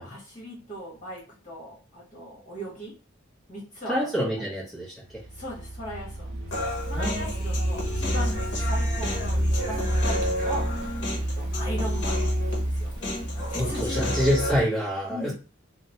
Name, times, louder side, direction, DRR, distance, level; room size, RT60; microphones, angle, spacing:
voice 1, 0.0-2.9 3.5-4.1 5.3-6.5 6.9-12.9 13.5-14.1 15.1-15.3, equal, 40° left, -5 dB, 1.4 m, -38 dB
voice 2, 3.9-4.9 6.9-7.3 13.5-15.3, equal, ahead, -8 dB, 0.8 m, -26 dB
Car, 5.1-14.6, right 1 dB, 45° right, 0.6 m, -29 dB
Human voice, 6.5-14.5, left 2 dB, 55° left, 0.8 m, -33 dB
2.9 x 2.1 x 2.8 m, 0.35 s
head